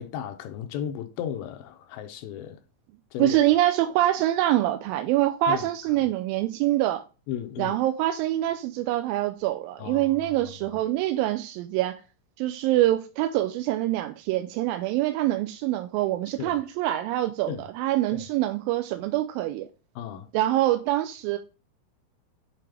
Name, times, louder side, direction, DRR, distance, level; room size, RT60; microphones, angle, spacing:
voice 1, 0.0-2.6 3.1-3.4 5.5-5.7 7.3-7.8 9.8-10.4 16.4-16.6 17.5-17.6 18.1-18.3 20.0-20.3, left 9 dB, 80° left, 2.3 m, -35 dB
voice 2, 3.2-7.0 7.6-12.0 12.4-19.7 20.3-21.4, right 14 dB, 80° right, 2.2 m, -25 dB
8.4 x 3.7 x 3.3 m
omnidirectional pair, 4.3 m